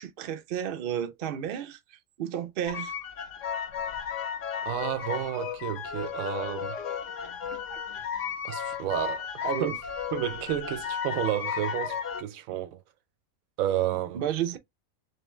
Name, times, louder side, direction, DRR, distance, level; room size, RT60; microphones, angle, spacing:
voice 1, 0.0-2.9 7.5-7.8 9.4-9.8 14.1-14.6, right 9 dB, 55° right, 0.7 m, -32 dB
sound 1, 2.7-12.2, left 7 dB, 70° left, 1.0 m, -34 dB
voice 2, 4.6-6.8 8.4-9.8 10.1-12.8 13.6-14.2, right 11 dB, 80° right, 1.0 m, -31 dB
3.3 x 3.1 x 3.0 m
omnidirectional pair, 1.4 m